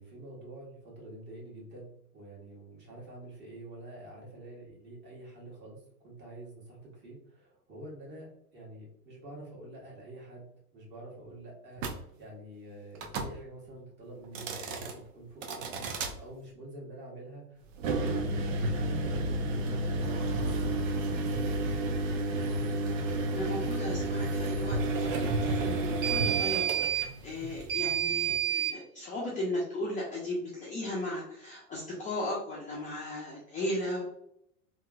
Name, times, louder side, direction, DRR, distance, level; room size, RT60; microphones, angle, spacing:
voice 1, 0.0-20.2 20.6-22.1, right 1 dB, 25° right, -4 dB, 1.3 m, -47 dB
sound 1, 11.8-12.0 13.0-13.3 14.2-14.9 15.4-16.1 17.7-28.8, right 3 dB, 55° right, 0.7 m, -30 dB
voice 2, 23.3-34.0, left 1 dB, 15° left, -5 dB, 0.6 m, -36 dB
3.0 x 2.9 x 2.3 m, 0.74 s
figure-of-eight pair, 95°, 45 cm